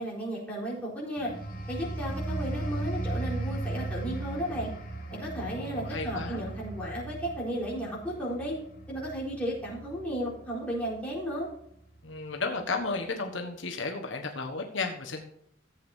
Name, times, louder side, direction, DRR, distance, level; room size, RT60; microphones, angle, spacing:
voice 1, 0.0-1.3 1.7-4.7 5.1-8.6 8.9-11.5, equal, 5° left, -6 dB, 4.3 m, -34 dB
sound 1, 1.2-11.5 11.9-12.2, right 2 dB, 40° left, 2.8 m, -37 dB
voice 2, 5.4-6.4 12.0-15.2, left 3 dB, 70° left, 2 dB, 1.4 m, -33 dB
14.5 x 8.2 x 2.8 m, 0.71 s
head